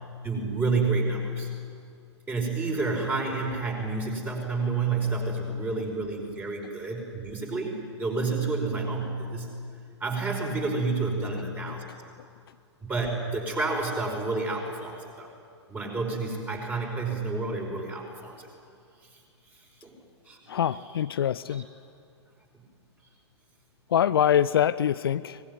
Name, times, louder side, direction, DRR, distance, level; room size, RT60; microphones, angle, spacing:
voice 1, 0.2-1.5 2.3-9.6 10.0-11.8 12.8-15.3 15.7-18.5 19.8-19.9 20.3-20.4, right 3 dB, 15° right, 1 dB, 5.5 m, -29 dB
voice 2, 20.5-21.7 23.9-25.4, left 10 dB, 55° left, 15 dB, 0.6 m, -24 dB
24.0 x 21.0 x 9.7 m, 2.3 s
figure-of-eight pair, 110°, 14 cm